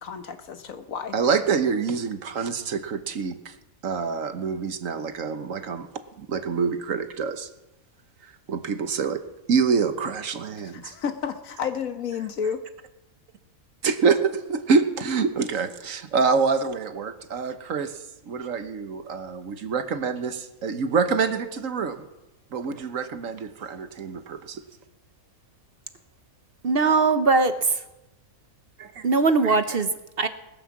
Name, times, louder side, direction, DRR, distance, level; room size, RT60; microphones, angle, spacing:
voice 1, 0.0-1.2 10.7-12.6, left 7 dB, 70° left, 9 dB, 1.5 m, -31 dB
voice 2, 1.1-3.5 3.8-5.9 6.2-7.5 8.2-9.2 9.5-10.9 13.8-22.1 22.5-24.6 28.8-29.0, right 5 dB, 65° right, 9 dB, 1.4 m, -26 dB
voice 3, 26.6-27.8 29.0-30.3, right 4 dB, 50° right, 10 dB, 0.9 m, -21 dB
19.5 x 9.7 x 7.2 m, 0.99 s
omnidirectional pair, 1.5 m